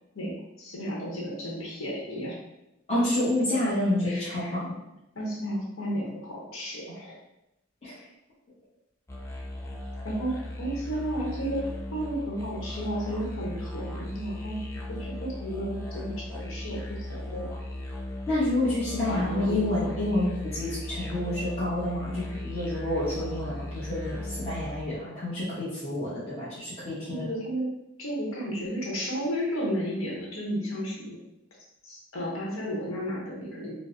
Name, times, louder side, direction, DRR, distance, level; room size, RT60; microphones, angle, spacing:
voice 1, 0.1-2.4 4.0-4.6 5.1-7.2 10.0-14.6 14.9-17.5 19.1-19.6 27.1-27.7 28.0-31.2 31.8-33.7, equal, 80° left, -3 dB, 0.9 m, -33 dB
voice 2, 2.9-4.8 7.8-8.0 18.3-27.2, left 1 dB, 30° left, -11 dB, 0.8 m, -28 dB
sound 1, 9.1-24.9, left 1 dB, 15° left, 0.4 m, -37 dB
4.4 x 2.0 x 2.6 m, 0.91 s
head